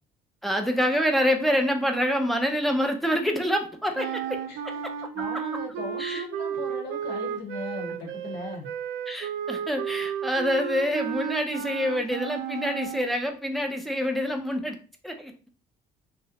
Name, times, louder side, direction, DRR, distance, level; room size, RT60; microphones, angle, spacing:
voice 1, 0.4-4.9 6.0-6.2 9.1-14.8 15.0-15.3, equal, ahead, 4 dB, 0.5 m, -26 dB
voice 2, 3.9-4.8 5.1-8.7, left 3 dB, 75° left, 1 dB, 1.0 m, -38 dB
sound 1, 3.9-13.1, right 9 dB, 85° right, 0.4 m, -33 dB
2.9 x 2.1 x 2.8 m, 0.38 s
cardioid pair, 110°, 17 cm